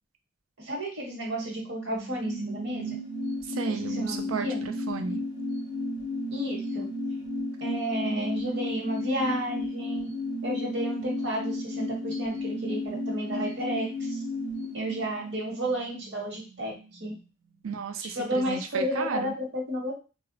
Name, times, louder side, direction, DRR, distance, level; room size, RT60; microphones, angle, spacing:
voice 1, 0.6-2.9 3.7-4.6 6.3-6.9 7.6-10.1 10.4-14.2 14.7-16.7 17.0-17.1 18.2-19.9, equal, 55° right, -1 dB, 0.9 m, -32 dB
sound 1, 1.6-16.8 17.1-17.2, left 1 dB, 20° right, 0.5 m, -33 dB
voice 2, 3.5-5.2 17.6-19.4, right 5 dB, 75° right, 6 dB, 0.4 m, -34 dB
2.1 x 2.0 x 3.7 m, 0.33 s
head